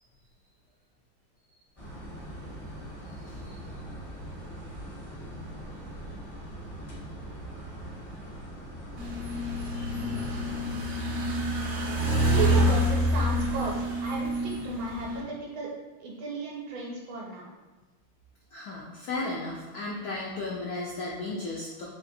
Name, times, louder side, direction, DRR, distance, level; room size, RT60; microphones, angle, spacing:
sound 1, 1.8-10.9, right 1 dB, 45° left, 0.4 m, -41 dB
voice 1, 3.0-3.5 9.7-10.3 18.5-21.9, left 2 dB, 85° left, -3 dB, 0.8 m, -35 dB
sound 2, 9.0-15.2, equal, 60° right, 0.7 m, -27 dB
voice 2, 12.3-15.7 16.0-17.5, right 4 dB, 75° right, -2 dB, 1.4 m, -34 dB
3.8 x 3.2 x 2.6 m, 1.1 s
omnidirectional pair, 2.3 m